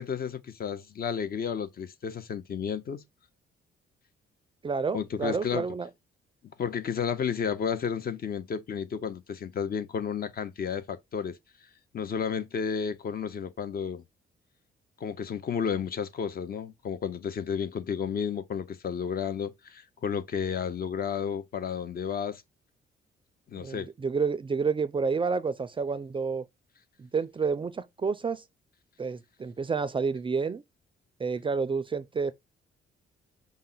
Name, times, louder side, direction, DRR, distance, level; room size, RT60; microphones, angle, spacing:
voice 1, 0.0-3.0 4.9-5.7 6.6-11.4 11.9-14.0 15.0-22.4 23.5-23.9, left 7 dB, 50° left, 0.7 m, -32 dB
voice 2, 4.6-5.9 23.6-26.4 27.0-28.4 29.0-30.6 31.2-32.3, right 5 dB, 25° right, 0.4 m, -29 dB
5.4 x 2.1 x 3.8 m
cardioid pair, 90°, 20 cm